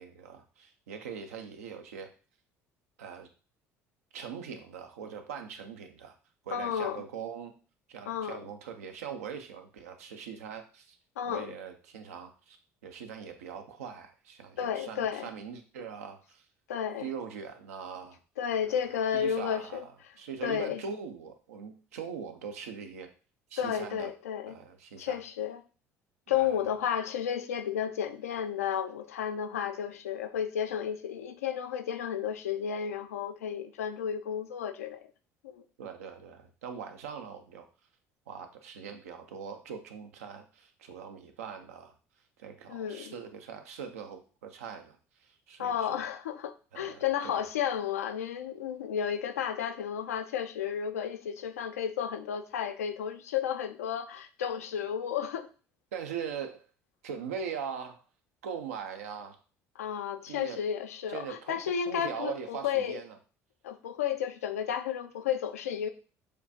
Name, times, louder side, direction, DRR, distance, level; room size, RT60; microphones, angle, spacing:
voice 1, 0.0-2.1 3.0-3.3 4.1-6.1 6.4-7.5 7.9-11.0 11.3-12.6 12.8-16.4 17.0-18.2 18.7-19.8 20.2-23.1 23.5-24.1 24.5-25.2 26.3-26.6 35.8-37.7 38.3-42.0 42.4-46.0 46.7-47.4 55.9-56.6 57.0-58.0 58.4-59.4 60.3-60.6 61.1-63.2, right 7 dB, 75° right, 0.5 m, -41 dB
voice 2, 6.5-7.0 8.1-8.4 11.2-11.6 14.6-15.3 16.7-17.1 18.4-19.8 20.4-20.8 23.6-24.6 25.0-25.6 26.3-35.1 35.4-35.6 42.7-43.1 45.6-55.5 59.8-63.0 63.6-65.9, left 8 dB, 80° left, 0.4 m, -32 dB
6.5 x 2.4 x 2.6 m
figure-of-eight pair, 55°, 8 cm